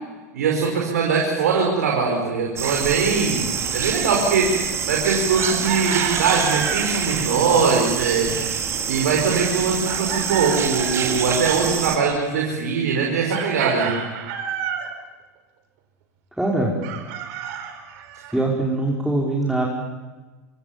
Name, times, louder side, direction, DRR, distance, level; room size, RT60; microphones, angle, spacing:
voice 1, 0.3-8.6 8.9-14.0, right 5 dB, 80° right, 0 dB, 5.2 m, -21 dB
sound 1, 2.6-12.0, right 7 dB, 35° right, 4.9 m, -26 dB
Chicken rooster, 5.4-6.9 9.8-11.2 13.3-14.9 16.8-18.4, right 9 dB, 60° right, 4.7 m, -30 dB
voice 2, 16.4-16.8 18.3-19.7, right 2 dB, ahead, -3 dB, 5.2 m, -22 dB
26.5 x 24.0 x 7.2 m, 1.3 s
hypercardioid pair, 95°, 9 cm